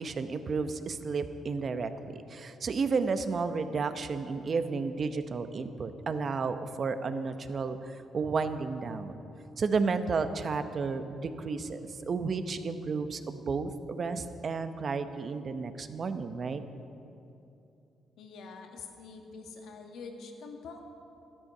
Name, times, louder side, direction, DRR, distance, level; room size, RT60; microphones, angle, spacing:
voice 1, 0.0-9.2 9.6-16.6, right 4 dB, 45° right, 9 dB, 0.8 m, -32 dB
voice 2, 18.2-20.8, left 4 dB, 75° left, 3 dB, 1.6 m, -45 dB
13.0 x 12.5 x 5.5 m, 2.8 s
cardioid pair, 90°, 0 cm